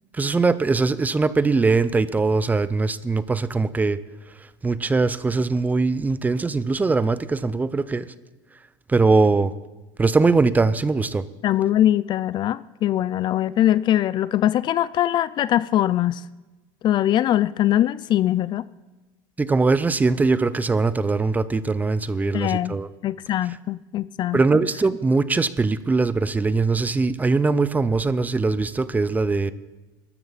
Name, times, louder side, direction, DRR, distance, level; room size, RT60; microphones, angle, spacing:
voice 1, 0.1-4.0 4.4-8.1 8.9-9.5 10.0-11.3 19.4-22.9 24.3-29.5, right 3 dB, 15° right, 0.7 m, -21 dB
voice 2, 11.4-16.2 16.8-18.7 22.3-22.7 23.0-24.4, left 12 dB, 40° left, 0.4 m, -22 dB
23.0 x 13.0 x 4.2 m
supercardioid pair, 115°, 12 cm